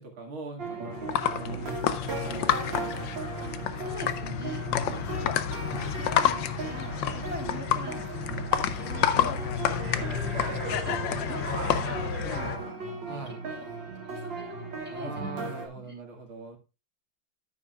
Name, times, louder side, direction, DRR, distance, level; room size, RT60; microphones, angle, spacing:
voice 1, 0.0-3.1 4.7-5.0 7.0-7.3 9.7-10.6 12.3-12.5 13.1-13.4 14.9-16.6, right 2 dB, 90° right, 2 dB, 2.9 m, -42 dB
sound 1, 0.6-15.7, right 3 dB, 70° right, 2.3 m, -37 dB
sound 2, 0.9-12.6, left 10 dB, 75° left, 1.4 m, -29 dB
voice 2, 3.7-10.3 10.8-11.0 11.2-13.3 14.0-15.5 15.7-16.0, equal, 5° right, -1 dB, 3.2 m, -43 dB
sound 3, 6.4-12.7, right 2 dB, 50° right, 2.8 m, -41 dB
9.9 x 9.8 x 2.3 m, 0.29 s
omnidirectional pair, 2.2 m